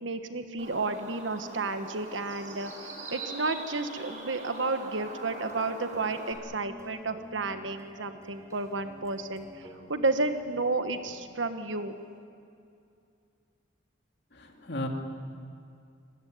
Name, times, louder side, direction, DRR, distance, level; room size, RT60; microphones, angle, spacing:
voice 1, 0.0-2.7 3.1-12.0, right 3 dB, 85° right, 8 dB, 1.4 m, -31 dB
Bird, 0.6-6.3, right 2 dB, 45° right, 6.0 m, -42 dB
sound 1, 5.3-11.1, left 1 dB, 20° right, 3.6 m, -51 dB
voice 2, 14.3-14.9, left 1 dB, 60° left, 2 dB, 2.8 m, -35 dB
25.5 x 20.5 x 9.5 m, 2.5 s
head